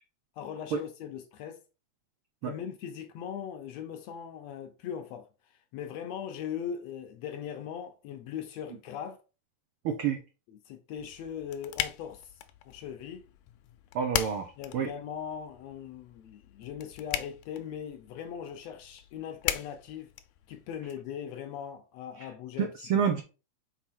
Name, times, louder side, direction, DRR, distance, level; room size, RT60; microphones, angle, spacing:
voice 1, 0.4-1.6 2.4-9.2 10.5-12.3 12.6-13.2 14.6-20.1 20.5-22.7 23.0-23.1, left 8 dB, 75° left, 1.6 m, -40 dB
voice 2, 9.8-10.2 13.9-14.9 22.2-22.3 22.6-23.2, right 7 dB, 90° right, 1.2 m, -29 dB
sound 1, 11.0-20.9, left 12 dB, 90° left, 2.1 m, -39 dB
5.9 x 4.2 x 4.5 m
omnidirectional pair, 3.5 m